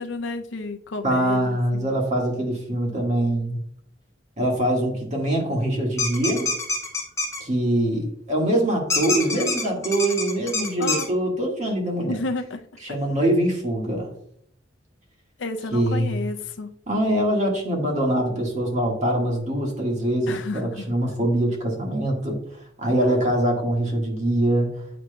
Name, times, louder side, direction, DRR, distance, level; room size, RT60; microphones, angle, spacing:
voice 1, 0.0-1.9 9.1-9.8 10.8-11.1 12.1-12.6 15.4-16.7 20.3-20.9 23.0-23.2, left 2 dB, 75° left, 6 dB, 0.6 m, -32 dB
voice 2, 1.0-3.5 4.4-6.5 7.4-12.2 12.8-14.1 15.7-16.1 16.9-22.4 22.8-24.7, right 1 dB, 40° right, 0 dB, 1.6 m, -23 dB
sound 1, 6.0-7.4 8.9-11.1, left 3 dB, 15° left, 0.8 m, -25 dB
8.6 x 5.0 x 2.2 m, 0.67 s
head